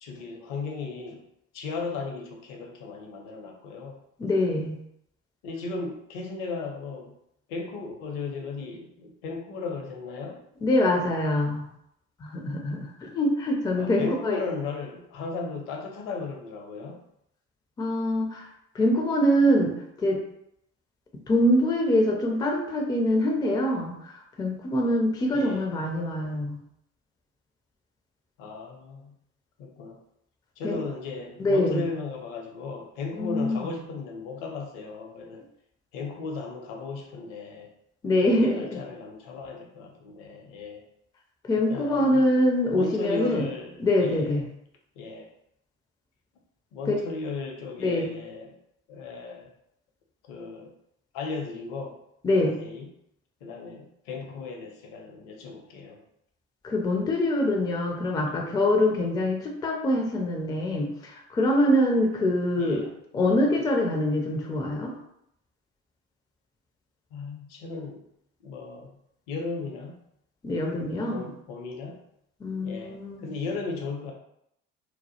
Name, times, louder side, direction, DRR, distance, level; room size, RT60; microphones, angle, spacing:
voice 1, 0.0-1.2 1.5-4.0 5.4-7.2 7.5-10.4 13.8-17.0 25.3-25.7 28.4-29.2 29.6-30.0 30.6-35.4 35.9-37.7 38.2-40.8 41.7-42.3 42.7-44.4 45.0-45.3 46.7-48.6 48.9-49.5 50.3-50.7 51.1-52.0 52.4-52.9 53.4-56.0 62.6-62.9 67.1-68.1 68.4-69.0 69.3-70.0 71.1-72.0 72.6-74.1, left 4 dB, 60° left, 1 dB, 0.7 m, -36 dB
voice 2, 4.2-4.8 10.6-11.7 12.2-14.4 17.8-18.5 18.7-20.2 21.3-24.0 24.4-26.6 30.6-30.8 31.4-31.8 33.2-33.7 38.0-38.6 41.5-43.4 43.8-44.4 46.9-47.0 47.8-48.1 52.2-52.6 56.6-62.9 63.1-64.9 70.4-71.2 72.4-73.3, left 1 dB, 10° left, 1 dB, 0.3 m, -24 dB
2.1 x 2.1 x 2.8 m, 0.76 s
figure-of-eight pair, 60°, 40 cm